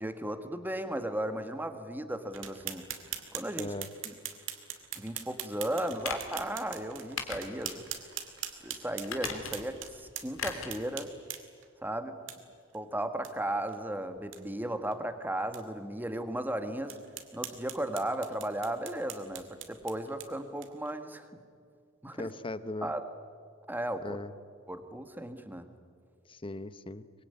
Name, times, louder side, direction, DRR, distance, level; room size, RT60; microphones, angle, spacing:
voice 1, 0.0-2.9 3.3-3.8 4.0-4.1 4.9-7.8 8.6-11.2 11.8-12.2 12.7-17.0 17.3-21.3 22.0-22.3 22.8-23.0 23.7-24.2 24.7-25.7, right 1 dB, 10° right, 8 dB, 1.6 m, -35 dB
sound 1, 2.3-11.7 12.3-12.4 12.7-12.8 13.2-13.3 13.7-13.8 14.2-14.4 14.9-15.0 15.5-15.6 16.1-16.2 16.9-20.9, right 10 dB, 65° right, 2.4 m, -42 dB
voice 2, 3.6-3.9 22.1-22.9 24.0-24.3 26.3-27.0, left 2 dB, 25° left, 13 dB, 0.9 m, -38 dB
sound 2, 6.0-6.4 7.2-7.8 8.2-8.3 9.0-9.8 10.4-10.8 11.1-11.2, left 5 dB, 90° left, 3.3 m, -38 dB
24.0 x 22.0 x 9.6 m, 2.1 s
head